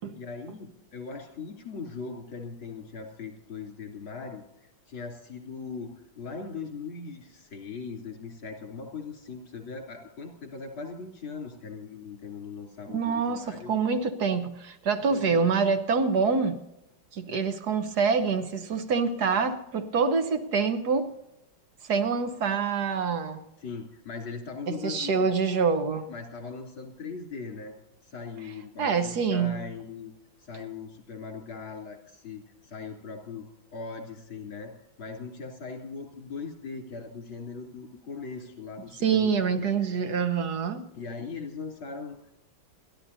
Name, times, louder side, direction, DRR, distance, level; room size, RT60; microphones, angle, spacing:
voice 1, 0.1-4.4 4.9-13.7 15.1-15.5 23.6-25.3 26.1-27.8 28.0-30.1 30.4-34.7 35.0-39.9 40.9-42.4, left 5 dB, 85° left, 3.9 m, -40 dB
voice 2, 12.9-16.6 17.1-21.1 21.8-23.4 24.7-26.0 28.8-29.5 39.0-40.8, right 5 dB, 55° right, 1.5 m, -26 dB
29.5 x 11.5 x 2.7 m
omnidirectional pair, 2.1 m